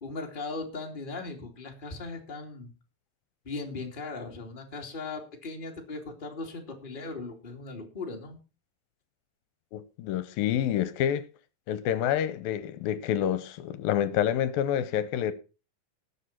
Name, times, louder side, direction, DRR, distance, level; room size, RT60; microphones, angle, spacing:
voice 1, 0.0-2.7 3.4-8.4, left 3 dB, 15° left, 2.2 m, -38 dB
voice 2, 9.7-11.3 11.7-15.3, left 10 dB, 80° left, 2.5 m, -28 dB
19.5 x 7.0 x 4.3 m
omnidirectional pair, 4.2 m